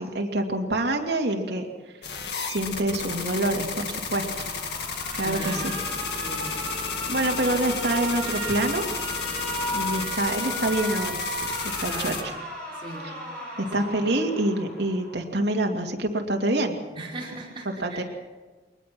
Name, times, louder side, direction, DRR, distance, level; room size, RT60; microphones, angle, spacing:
voice 1, 0.0-1.6 2.4-4.5 5.1-5.7 7.1-8.8 9.7-11.3 11.8-12.3 13.0-13.1 13.6-16.8 17.7-18.0, right 1 dB, 70° right, 2 dB, 2.5 m, -26 dB
sound 1, 2.0-12.2, left 5 dB, 65° left, 2.2 m, -32 dB
Alarm, 4.2-15.2, right 1 dB, 5° left, 7.0 m, -35 dB
voice 2, 5.2-5.8 6.2-6.6 11.8-12.2 12.8-13.1 13.6-14.1 17.0-18.0, right 2 dB, 30° right, -4 dB, 5.3 m, -38 dB
22.5 x 20.0 x 6.1 m, 1.4 s
head